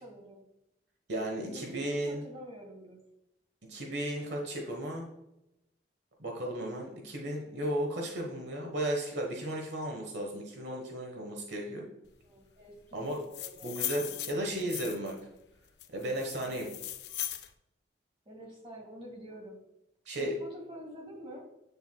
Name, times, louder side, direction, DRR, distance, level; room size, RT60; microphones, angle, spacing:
voice 1, 0.0-0.4 1.4-3.0 12.2-13.7 16.5-16.7 18.3-19.6 20.2-21.5, equal, 30° right, -1 dB, 2.0 m, -47 dB
voice 2, 1.1-2.2 3.7-5.1 6.2-11.8 12.9-13.2 13.6-15.1 15.9-16.7 20.1-20.3, right 1 dB, 70° right, 1 dB, 1.2 m, -34 dB
sound 1, 13.1-15.2 15.8-17.5, left 12 dB, 65° left, 0.5 m, -38 dB
8.0 x 6.9 x 2.3 m, 0.87 s
head